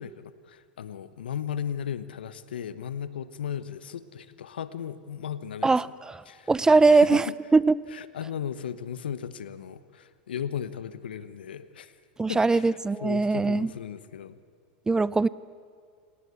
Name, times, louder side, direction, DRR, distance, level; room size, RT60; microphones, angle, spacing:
voice 1, 0.0-5.9 6.3-6.5 6.9-7.4 7.9-11.9 12.3-14.4, left 8 dB, 85° left, 15 dB, 1.1 m, -36 dB
voice 2, 5.6-6.2 6.5-7.2 7.5-7.7 12.2-13.7 14.9-15.3, right 3 dB, 15° right, 20 dB, 0.6 m, -21 dB
27.0 x 19.0 x 8.4 m, 2.1 s
hypercardioid pair, 95°, 5 cm